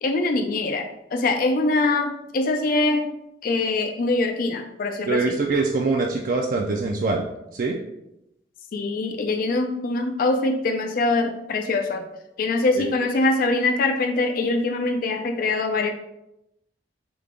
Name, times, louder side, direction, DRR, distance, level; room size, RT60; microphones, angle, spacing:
voice 1, 0.0-3.1 3.4-5.3 8.7-12.1 12.4-15.9, left 2 dB, 55° left, 6 dB, 0.4 m, -23 dB
voice 2, 5.1-7.2 7.5-7.7 12.8-12.9, right 3 dB, 50° right, 0 dB, 0.4 m, -23 dB
5.0 x 2.2 x 3.6 m, 0.86 s
head